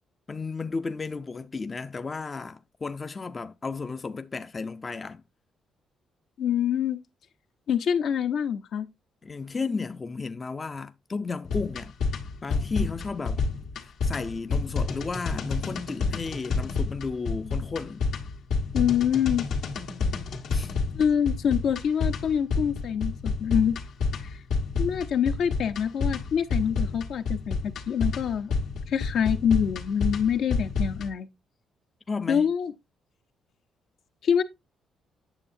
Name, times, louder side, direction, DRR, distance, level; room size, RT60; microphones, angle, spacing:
voice 1, 0.3-5.2 9.2-11.9 12.4-13.4 13.8-18.0 20.5-20.7 32.1-32.5, left 4 dB, 30° left, 0.5 m, -33 dB
voice 2, 6.4-7.0 7.7-8.9 18.7-19.5 20.9-23.7 24.2-24.3 24.8-27.6 27.9-28.5 28.9-31.3 32.3-32.7 34.2-34.4, left 8 dB, 70° left, 0.8 m, -25 dB
sound 1, 11.5-31.1, left 4 dB, 85° left, 1.6 m, -29 dB
9.0 x 6.8 x 2.7 m
cardioid pair, 90°, 0 cm